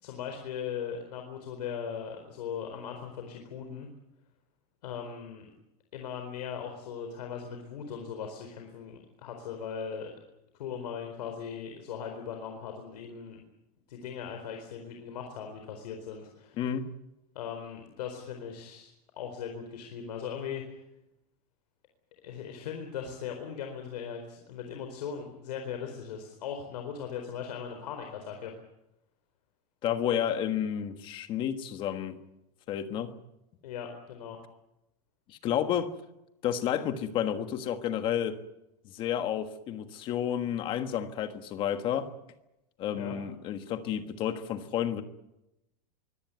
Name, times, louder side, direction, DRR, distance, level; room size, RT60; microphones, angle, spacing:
voice 1, 0.0-3.9 4.8-5.5 5.9-10.1 10.6-13.4 13.9-16.6 17.3-20.6 22.2-28.5 33.6-34.4 42.9-43.2, left 7 dB, 80° left, 4 dB, 4.4 m, -39 dB
voice 2, 16.6-16.9 29.8-32.2 32.7-33.1 35.3-35.9 36.4-38.4 38.9-42.1 42.8-45.0, left 9 dB, 25° left, 9 dB, 1.4 m, -31 dB
23.5 x 17.5 x 9.4 m, 0.89 s
supercardioid pair, 180°, 21 cm